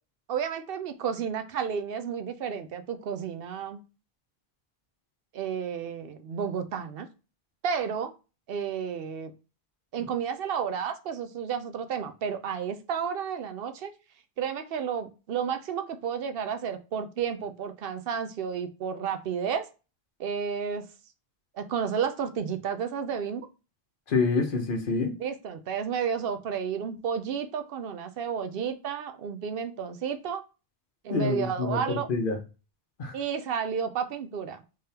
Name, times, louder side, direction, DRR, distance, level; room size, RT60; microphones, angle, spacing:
voice 1, 0.3-3.8 5.3-7.1 7.6-8.1 8.5-9.3 9.9-13.9 14.4-19.7 20.2-20.8 21.5-23.5 25.2-30.4 31.0-32.1 33.1-34.6, right 7 dB, 70° right, 0.8 m, -31 dB
voice 2, 24.1-25.2 31.1-32.4 33.0-33.2, left 3 dB, 60° left, 0.9 m, -27 dB
3.5 x 3.5 x 2.8 m
omnidirectional pair, 1.0 m